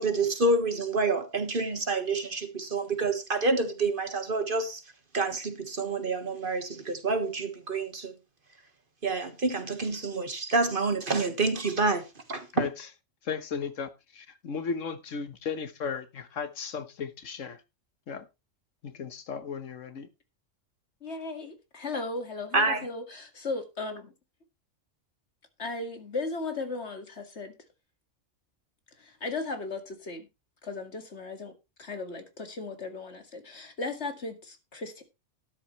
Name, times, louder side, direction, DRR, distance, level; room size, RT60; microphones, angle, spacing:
voice 1, 0.0-4.8 5.1-8.1 9.0-12.7 22.5-22.9, right 3 dB, 45° right, 1.6 m, -28 dB
voice 2, 12.5-12.9 13.2-17.6 18.1-18.3 18.8-20.1, left 6 dB, 85° left, 1.5 m, -35 dB
voice 3, 21.0-24.1 25.6-27.5 29.0-30.3 30.6-31.5 31.8-35.0, left 3 dB, 60° left, 2.3 m, -36 dB
12.5 x 10.5 x 3.2 m
omnidirectional pair, 1.3 m